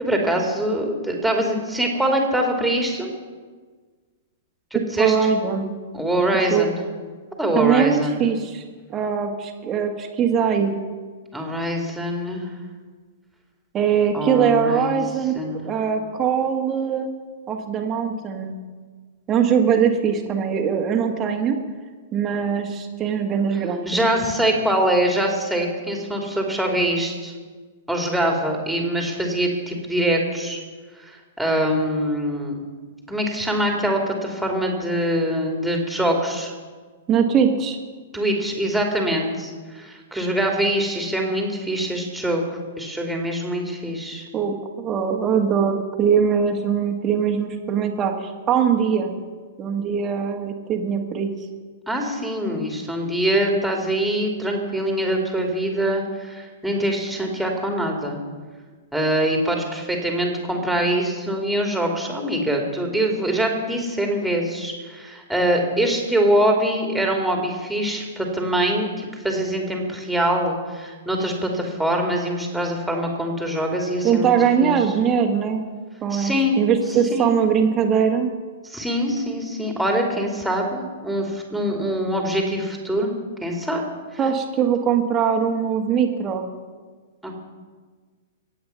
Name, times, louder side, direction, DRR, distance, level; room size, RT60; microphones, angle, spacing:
voice 1, 0.0-3.1 4.7-5.2 5.9-6.7 7.4-8.2 11.3-12.5 14.1-15.0 15.3-15.7 23.9-27.3 27.9-30.6 31.0-32.6 33.1-36.5 38.1-42.4 42.8-44.2 51.9-58.2 58.9-74.4 74.6-74.8 76.1-76.6 77.1-77.3 78.6-83.1 83.4-83.8 84.1-84.2 87.2-87.4, right 1 dB, ahead, 1 dB, 2.8 m, -23 dB
voice 2, 5.0-5.8 6.5-6.7 7.5-8.6 8.9-10.8 13.7-15.4 15.6-17.1 17.5-18.6 19.3-21.6 22.1-24.0 37.1-37.8 44.3-49.1 49.6-51.3 74.0-75.6 76.0-78.3 84.2-86.5, right 7 dB, 25° right, 1 dB, 1.7 m, -21 dB
22.5 x 8.6 x 5.8 m, 1.5 s
figure-of-eight pair, 105°, 0 cm